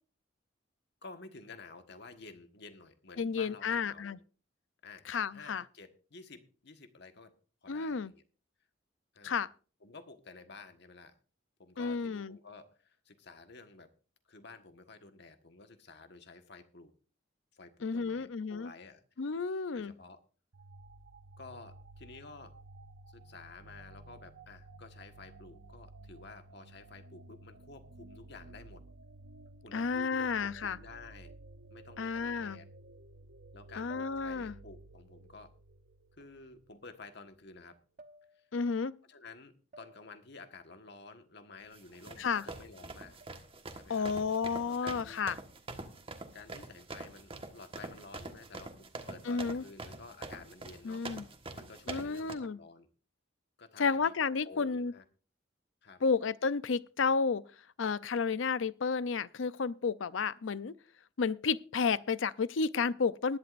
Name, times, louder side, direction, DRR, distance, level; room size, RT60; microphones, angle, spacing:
voice 1, 1.0-4.2 4.8-7.3 7.6-8.2 9.1-9.4 9.8-11.1 11.6-13.9 14.3-16.9 17.5-19.0 19.7-20.2 21.4-22.5 23.1-28.8 29.6-31.3 31.7-32.7 33.5-35.5 36.2-37.8 38.3-38.5 39.1-43.2 43.7-44.1 44.6-45.3 46.3-48.7 49.1-51.1 51.5-52.9 53.6-54.1 54.4-55.0 55.8-56.0, left 3 dB, 65° left, 1.5 m, -52 dB
voice 2, 3.2-4.2 5.1-5.6 7.7-8.1 9.2-9.5 11.8-12.4 17.8-18.7 19.2-19.9 29.7-30.8 32.0-32.6 33.8-34.5 38.5-38.9 42.2-42.4 43.9-45.4 49.3-49.6 50.8-51.2 51.9-52.6 53.8-54.9 56.0-57.4 57.8-60.8 61.2-63.4, left 5 dB, 80° left, 0.6 m, -32 dB
sound 1, 20.5-36.9, right 2 dB, 80° right, 0.7 m, -54 dB
sound 2, 33.9-34.6 36.2-36.4 38.0-38.6 39.7-40.4 43.2-43.7 45.1-45.5 46.9-47.3, right 1 dB, 45° right, 1.1 m, -60 dB
sound 3, 41.7-52.3, right 2 dB, 30° right, 1.5 m, -45 dB
20.0 x 11.0 x 2.6 m
head